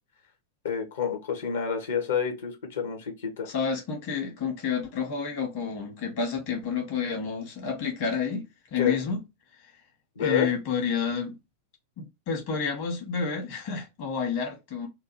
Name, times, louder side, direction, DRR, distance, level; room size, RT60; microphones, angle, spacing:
voice 1, 0.6-3.5 8.8-9.0 10.2-10.5, left 7 dB, 65° left, 1.1 m, -28 dB
voice 2, 3.5-9.2 10.2-11.3 12.0-14.9, left 6 dB, 45° left, 1.3 m, -30 dB
3.8 x 2.3 x 3.1 m
figure-of-eight pair, 90°, 0 cm